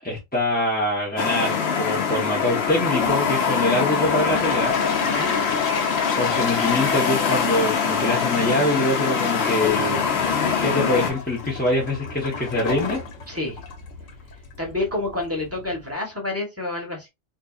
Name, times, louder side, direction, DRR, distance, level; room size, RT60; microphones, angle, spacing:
voice 1, 0.0-4.7 6.2-10.0 10.6-13.0, left 1 dB, 10° left, 0.6 m, -24 dB
sound 1, 1.2-11.1, left 6 dB, 60° left, 1.0 m, -24 dB
Toilet flush, 2.7-15.9, left 5 dB, 90° left, 1.1 m, -31 dB
voice 2, 5.0-5.4 13.3-13.6 14.6-17.1, left 2 dB, 10° right, 1.0 m, -28 dB
3.9 x 2.6 x 2.3 m
omnidirectional pair, 1.3 m